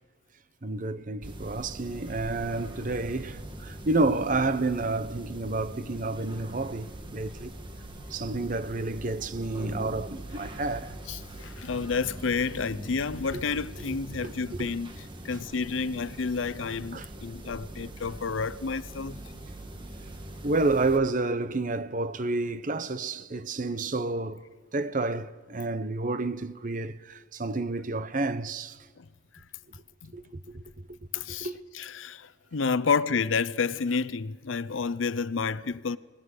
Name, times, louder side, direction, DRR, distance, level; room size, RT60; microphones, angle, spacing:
voice 1, 0.6-7.5 8.1-10.9 13.3-13.4 13.9-14.7 16.9-17.1 20.4-24.4 24.7-28.8 30.1-30.6 31.3-31.6, right 2 dB, 40° right, 0.8 m, -30 dB
sound 1, 1.2-21.0, right 1 dB, 25° right, 1.6 m, -42 dB
voice 2, 11.1-14.9 15.2-19.2 29.0-29.1 30.0-30.1 31.1-31.5 31.7-36.0, left 5 dB, 85° left, 0.6 m, -30 dB
27.0 x 19.0 x 6.6 m
head